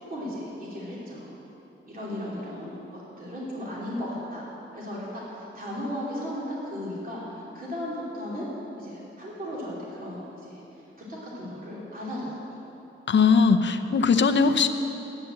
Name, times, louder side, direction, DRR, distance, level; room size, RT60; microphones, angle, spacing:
voice 1, 0.1-1.4 1.9-8.4 8.8-10.8 11.2-12.7, left 1 dB, 45° right, -6 dB, 2.8 m, -36 dB
voice 2, 13.1-14.7, left 5 dB, 60° left, 8 dB, 0.7 m, -20 dB
11.0 x 8.3 x 8.9 m, 3.0 s
wide cardioid pair, 130°, 21 cm